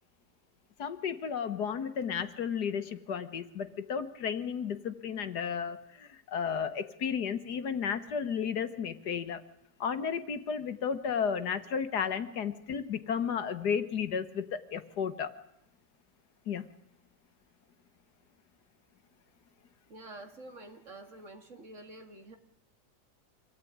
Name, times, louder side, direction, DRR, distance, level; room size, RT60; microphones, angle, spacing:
voice 1, 0.8-9.4 9.8-15.4 16.5-16.7, left 7 dB, 70° left, 10 dB, 1.7 m, -33 dB
voice 2, 19.9-22.4, right 2 dB, 45° right, 5 dB, 2.6 m, -48 dB
25.5 x 17.0 x 9.3 m, 0.82 s
omnidirectional pair, 1.8 m